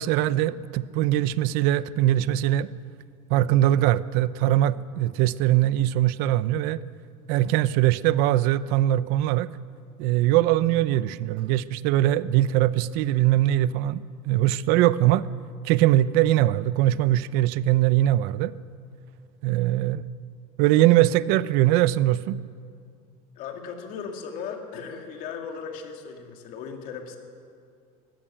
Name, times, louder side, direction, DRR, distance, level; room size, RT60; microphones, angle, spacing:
voice 1, 0.0-2.7 3.3-6.8 7.3-9.5 10.0-15.3 15.6-18.5 19.4-20.0 20.6-22.4, right 14 dB, 65° right, 17 dB, 0.7 m, -21 dB
voice 2, 23.4-27.2, left 6 dB, 55° left, 3 dB, 2.6 m, -37 dB
20.0 x 15.5 x 8.9 m, 2.3 s
cardioid pair, 150°, 17 cm